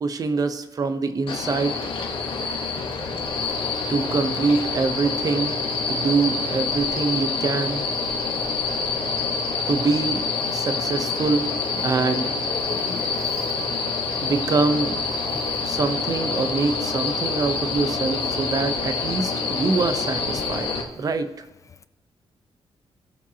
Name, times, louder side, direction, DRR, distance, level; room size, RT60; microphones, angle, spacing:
voice 1, 0.0-1.8 3.9-5.6 5.9-7.8 9.7-10.2 10.5-11.5 11.8-12.3 14.2-14.9 15.6-20.7 21.0-21.3, right 4 dB, 40° right, 9 dB, 0.8 m, -24 dB
sound 1, 1.3-20.8, left 4 dB, 60° left, 1.5 m, -26 dB
voice 2, 12.5-13.3 15.3-15.4, left 5 dB, 35° left, 12 dB, 0.4 m, -36 dB
18.0 x 7.6 x 2.9 m, 0.97 s
wide cardioid pair, 155°, 10 cm